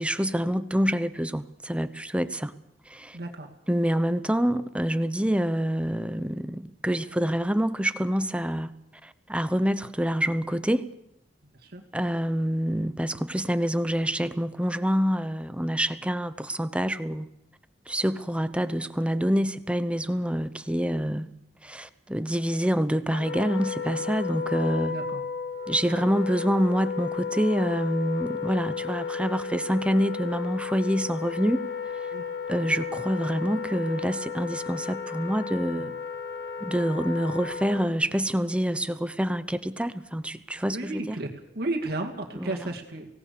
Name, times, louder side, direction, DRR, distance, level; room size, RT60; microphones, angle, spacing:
voice 1, 0.0-2.5 2.9-3.2 3.7-8.7 9.0-10.9 11.9-17.3 17.9-21.3 21.6-24.9 25.7-31.6 32.5-35.9 36.6-41.2 42.3-42.7, equal, 5° right, 12 dB, 0.8 m, -26 dB
voice 2, 3.1-3.5 11.4-11.8 24.9-25.2 32.1-32.2 35.8-35.9 40.7-43.1, right 2 dB, 60° right, 1 dB, 2.3 m, -33 dB
Wind instrument woodwind instrument, 23.1-38.0, left 6 dB, 65° left, 2.8 m, -33 dB
24.5 x 18.0 x 6.8 m, 0.84 s
head